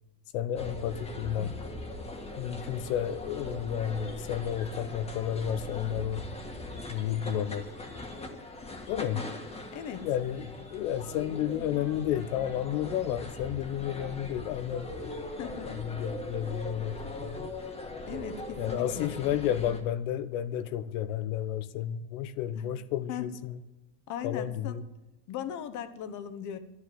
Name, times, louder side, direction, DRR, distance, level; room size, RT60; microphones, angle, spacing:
voice 1, 0.3-1.6 2.3-6.3 6.9-7.7 8.9-9.3 10.0-15.3 15.6-17.5 18.6-23.6 24.2-24.8, left 10 dB, 90° left, 1.1 m, -32 dB
sound 1, 0.6-19.8, left 2 dB, 15° left, 1.7 m, -40 dB
voice 2, 9.7-10.0 15.4-15.7 18.1-19.1 22.5-22.6 23.1-23.3 24.1-24.8 25.3-26.6, left 9 dB, 45° left, 1.2 m, -38 dB
11.5 x 11.0 x 7.7 m
cardioid pair, 155°, 41 cm